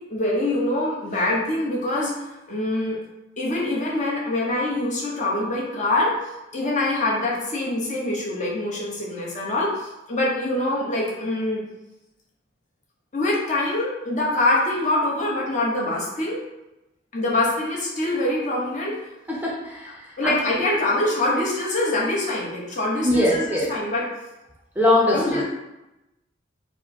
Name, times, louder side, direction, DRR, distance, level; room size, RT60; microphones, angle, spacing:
voice 1, 0.1-2.1 2.5-3.0 3.4-6.2 6.5-11.6 13.1-16.4 17.1-19.0 20.2-24.0 25.1-25.4, left 1 dB, 40° left, -4 dB, 1.0 m, -24 dB
voice 2, 19.3-20.7 23.0-23.7 24.8-25.4, left 1 dB, 10° right, -4 dB, 0.6 m, -22 dB
4.9 x 2.1 x 4.3 m, 0.97 s
head